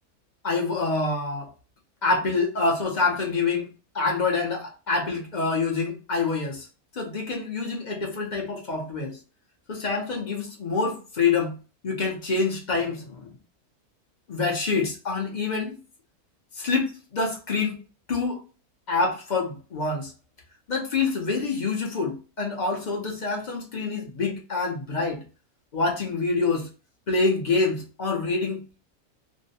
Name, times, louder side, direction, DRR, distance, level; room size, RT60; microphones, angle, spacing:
voice 1, 0.4-1.5 2.0-3.7 3.9-6.7 6.9-9.2 9.7-11.5 11.8-13.3 14.3-15.7 16.6-17.8 18.1-18.4 18.9-20.1 20.7-25.2 25.7-26.7 27.1-28.6, left 4 dB, 50° left, 0.5 m, -26 dB
2.6 x 2.1 x 2.7 m
omnidirectional pair, 1.6 m